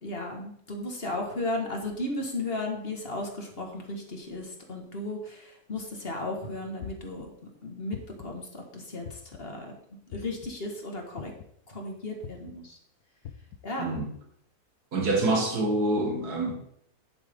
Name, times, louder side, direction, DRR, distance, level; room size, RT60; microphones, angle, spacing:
voice 1, 0.0-7.3 7.6-9.7 10.1-11.3 11.7-12.8 13.6-13.9, left 2 dB, 40° left, 2 dB, 1.9 m, -35 dB
sound 1, 6.8-7.2 7.9-8.4 9.0-9.5 10.1-10.5 11.2-11.6 12.2-12.5 13.2-13.6, left 10 dB, 80° left, 1.2 m, -42 dB
voice 2, 13.8-14.1 14.9-16.5, right 2 dB, 90° right, 2 dB, 2.3 m, -26 dB
10.5 x 8.2 x 3.7 m, 0.70 s
omnidirectional pair, 1.6 m